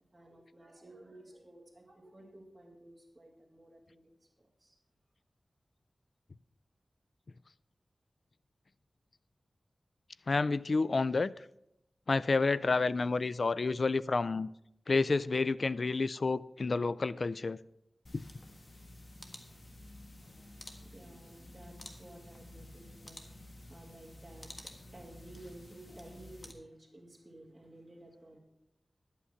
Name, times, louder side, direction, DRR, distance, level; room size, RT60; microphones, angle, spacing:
voice 1, 0.1-4.7 20.9-28.4, right 1 dB, 20° right, 2.6 m, -54 dB
voice 2, 10.3-11.3 12.1-14.5 14.9-17.6 18.1-18.2, left 3 dB, 65° left, 0.4 m, -29 dB
sound 1, 18.1-26.5, left 1 dB, 45° left, 1.6 m, -51 dB
11.5 x 8.5 x 5.8 m
wide cardioid pair, 75°, 0 cm